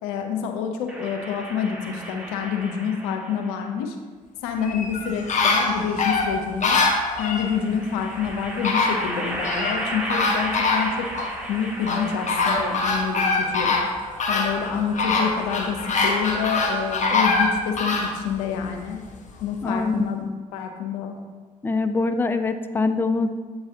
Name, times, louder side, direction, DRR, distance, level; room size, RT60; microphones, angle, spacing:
voice 1, 0.0-4.0 4.4-6.8 7.2-11.1 11.5-13.8 14.3-19.0 19.4-20.3 20.5-21.2, left 7 dB, 75° left, 4 dB, 0.6 m, -27 dB
sound 1, 0.9-3.5 4.7-5.7 7.3-13.3, right 1 dB, 5° right, 1.9 m, -34 dB
sound 2, 4.6-7.5 8.3-8.4 8.6-9.8 10.1-11.3 11.9-18.1 18.6-18.7, left 3 dB, 40° left, 1.2 m, -23 dB
voice 2, 19.6-19.9 21.6-23.4, left 3 dB, 10° left, 9 dB, 0.5 m, -23 dB
8.0 x 4.7 x 2.8 m, 1.5 s
figure-of-eight pair, 45°, 19 cm